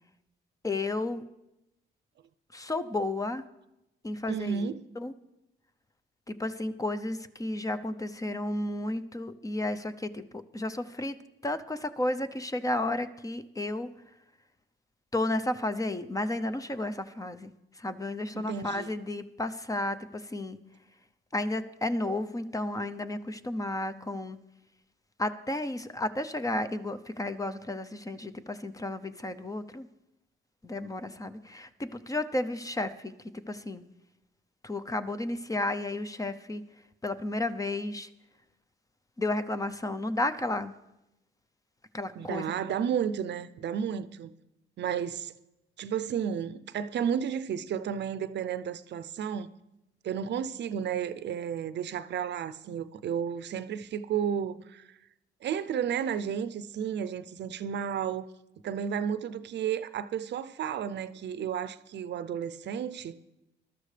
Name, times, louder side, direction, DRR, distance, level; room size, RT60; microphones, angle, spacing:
voice 1, 0.6-1.2 2.5-3.4 4.0-5.1 6.3-11.2 11.4-13.9 15.1-20.6 21.3-24.4 25.2-29.9 30.6-33.1 33.5-33.8 34.6-36.6 37.0-38.1 39.2-40.7 41.9-42.5, left 2 dB, 15° left, 0.6 m, -32 dB
voice 2, 4.3-4.8 18.3-18.9 42.2-44.3 44.8-45.3 45.8-49.5 50.0-54.9 55.4-58.3 58.6-63.1, right 8 dB, 60° right, 0.6 m, -32 dB
21.0 x 12.5 x 3.3 m
cardioid pair, 90°, 20 cm